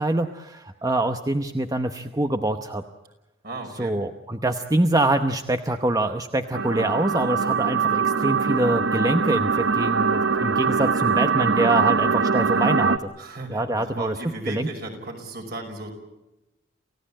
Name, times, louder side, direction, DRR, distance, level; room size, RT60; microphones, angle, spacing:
voice 1, 0.0-2.8 3.8-13.1 13.5-14.1 14.5-14.7, right 1 dB, 20° right, 7 dB, 0.8 m, -25 dB
voice 2, 3.4-4.0 13.2-15.9, right 2 dB, 55° right, 3 dB, 5.7 m, -35 dB
sound 1, 6.5-13.0, right 5 dB, 70° right, 0.9 m, -22 dB
28.5 x 16.5 x 8.7 m, 0.98 s
head